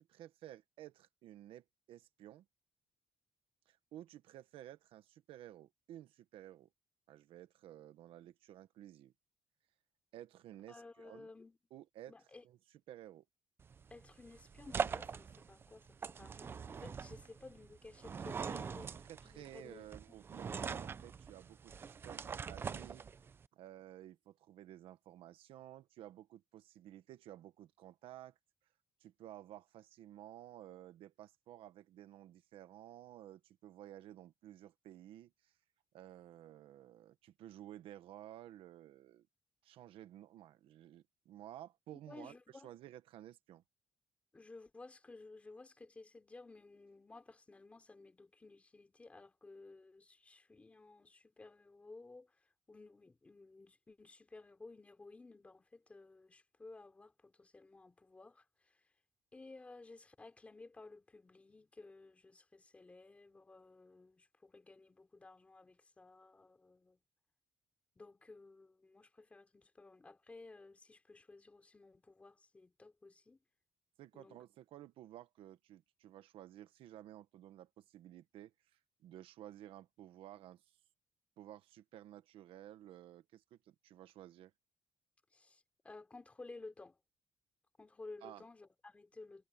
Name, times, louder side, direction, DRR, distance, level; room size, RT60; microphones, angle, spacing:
voice 1, 0.0-2.4 3.7-6.7 7.1-9.1 10.1-11.3 11.7-12.1 12.4-12.6 12.9-13.2 18.4-23.0 23.5-28.4 29.0-35.5 35.9-39.3 39.6-42.3 42.6-43.6 74.0-80.8 81.4-84.5 88.2-88.4, right 13 dB, 75° right, 1.2 m, -54 dB
voice 2, 10.7-11.6 12.1-12.4 13.9-18.9 19.2-19.9 20.5-20.6 41.9-42.7 44.3-58.8 59.3-67.0 68.0-73.4 74.1-74.4 85.3-87.0 87.8-89.5, left 3 dB, 15° left, 3.6 m, -56 dB
sound 1, 13.6-23.5, right 6 dB, 25° right, 0.5 m, -43 dB
cardioid pair, 180°, 9 cm